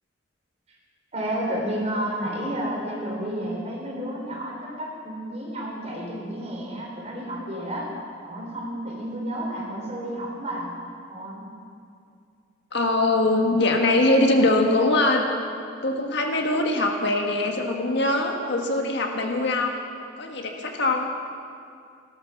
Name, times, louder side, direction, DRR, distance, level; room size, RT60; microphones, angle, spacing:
voice 1, 1.1-7.9 8.2-10.7 11.1-11.4, right 1 dB, 35° right, -2 dB, 4.0 m, -31 dB
voice 2, 12.7-15.2 15.8-19.8 20.2-21.1, left 2 dB, 65° left, 2 dB, 1.6 m, -22 dB
17.5 x 13.0 x 6.0 m, 2.4 s
head